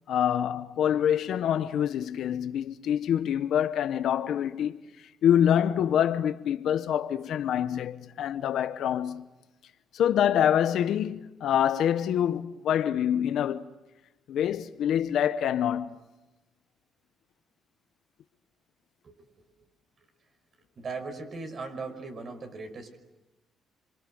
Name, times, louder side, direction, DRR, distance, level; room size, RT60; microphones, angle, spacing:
voice 1, 0.1-4.8 5.2-9.3 9.9-13.7 14.3-16.0, left 9 dB, 75° left, 1.0 m, -26 dB
voice 2, 20.8-23.0, right 4 dB, 50° right, 5.4 m, -38 dB
27.5 x 25.5 x 7.9 m
cardioid pair, 90°, 0 cm